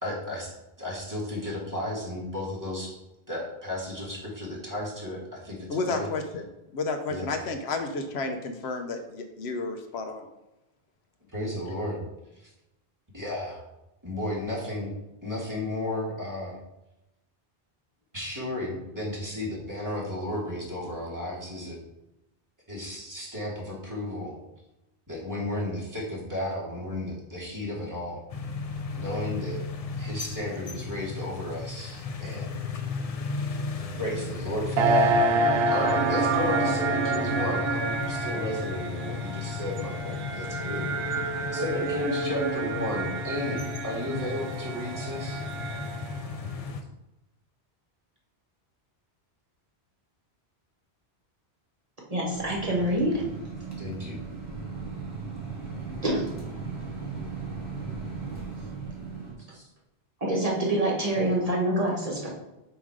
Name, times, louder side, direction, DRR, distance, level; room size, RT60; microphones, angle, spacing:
voice 1, 0.0-3.0 3.3-6.1 7.1-7.4 11.3-12.0 12.4-12.5 13.1-13.6 14.0-14.9 15.2-16.6 18.1-21.8 22.7-24.4 25.1-28.2 28.9-29.6 30.0-32.5 34.0-35.1 35.7-40.8 41.2-45.4 53.8-54.2 59.5-59.6, left 1 dB, 15° right, -5 dB, 1.9 m, -33 dB
voice 2, 5.7-10.3, left 3 dB, 75° left, 6 dB, 1.0 m, -31 dB
sound 1, 28.3-46.8, left 4 dB, 45° left, 0.5 m, -35 dB
sound 2, 34.8-46.2, right 2 dB, 70° right, 0.8 m, -28 dB
voice 3, 52.1-53.1 56.0-56.3 60.2-62.3, right 1 dB, 35° right, -3 dB, 1.4 m, -26 dB
sound 3, 52.3-59.3, right 4 dB, 15° left, 2.0 m, -37 dB
7.2 x 3.1 x 4.8 m, 0.94 s
omnidirectional pair, 1.1 m